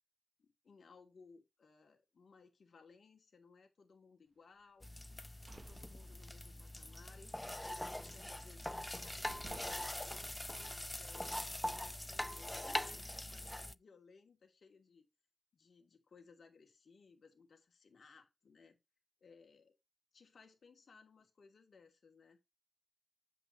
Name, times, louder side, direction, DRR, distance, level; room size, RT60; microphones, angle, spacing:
voice 1, 0.4-5.1 5.7-9.8 10.6-11.5 12.0-15.1 15.5-18.8 19.2-19.8 20.1-22.4, left 4 dB, 70° left, 2.7 m, -63 dB
sound 1, 4.8-13.8, left 1 dB, 15° left, 0.5 m, -43 dB
sound 2, 5.1-6.7 7.0-7.3 7.6-8.4 8.9-9.0 9.2-11.1, right 4 dB, 50° right, 1.0 m, -58 dB
8.0 x 7.9 x 3.0 m
cardioid pair, 75°, 0 cm